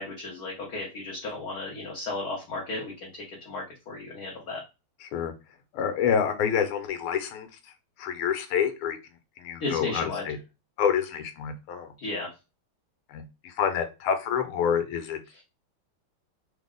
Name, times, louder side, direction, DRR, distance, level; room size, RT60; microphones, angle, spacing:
voice 1, 0.0-4.6 9.6-10.2 12.0-12.3, left 2 dB, 55° left, -3 dB, 1.3 m, -34 dB
voice 2, 5.7-7.5 8.0-9.0 9.4-10.4 10.8-11.9 13.1-15.2, left 7 dB, 85° left, 8 dB, 1.6 m, -27 dB
4.1 x 2.0 x 3.6 m, 0.27 s
omnidirectional pair, 2.4 m